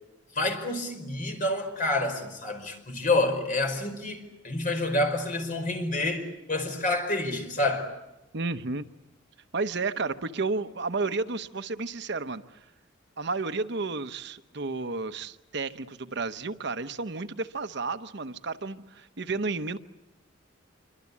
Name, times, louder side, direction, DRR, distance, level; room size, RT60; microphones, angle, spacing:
voice 1, 0.3-7.9, left 2 dB, 40° left, 5.0 m, -28 dB
voice 2, 8.3-8.9 9.5-12.4 13.2-19.8, right 3 dB, 60° right, 0.9 m, -32 dB
27.0 x 24.5 x 8.5 m
head